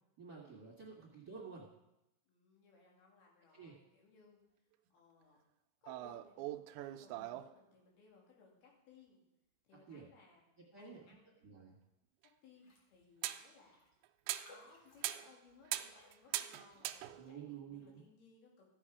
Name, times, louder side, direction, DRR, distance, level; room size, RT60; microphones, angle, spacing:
voice 1, 0.2-1.7 3.5-3.7 9.9-10.1 10.7-11.0 11.4-11.8 17.2-18.0, right 6 dB, 40° right, -4 dB, 1.6 m, -51 dB
voice 2, 2.3-4.4 4.9-5.4 5.8-9.2 9.6-10.5 10.8-11.3 12.2-13.9 14.5-18.7, left 4 dB, 85° left, -2 dB, 4.4 m, -64 dB
sound 1, 5.9-7.5 12.2-12.3 13.2-13.5 14.0-14.6 15.0-15.4 15.7-17.5, right 14 dB, 85° right, 2.5 m, -41 dB
Raindrop, 12.6-12.9 13.2-13.3 13.7-17.2 17.7-18.0, left 1 dB, 40° left, 1.9 m, -64 dB
14.0 x 7.8 x 4.9 m, 0.89 s
omnidirectional pair, 4.3 m